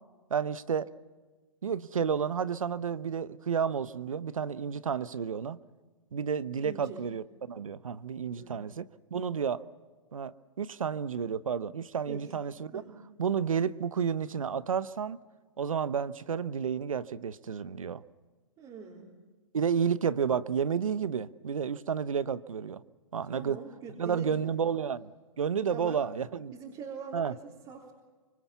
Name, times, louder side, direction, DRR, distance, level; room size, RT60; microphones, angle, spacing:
voice 1, 0.3-0.9 1.6-5.6 6.1-8.9 9.1-9.6 10.1-12.8 13.2-15.2 15.6-18.0 19.5-22.8 23.1-23.6 24.0-25.1 25.4-26.5 27.1-27.3, right 7 dB, 85° right, 0.9 m, -31 dB
voice 2, 6.6-7.0 8.4-8.6 12.1-12.2 12.7-13.0 18.6-19.1 23.3-24.6 25.7-26.0 26.5-27.9, right 5 dB, 30° right, 3.7 m, -43 dB
25.0 x 24.5 x 7.0 m
hypercardioid pair, 120°, 17 cm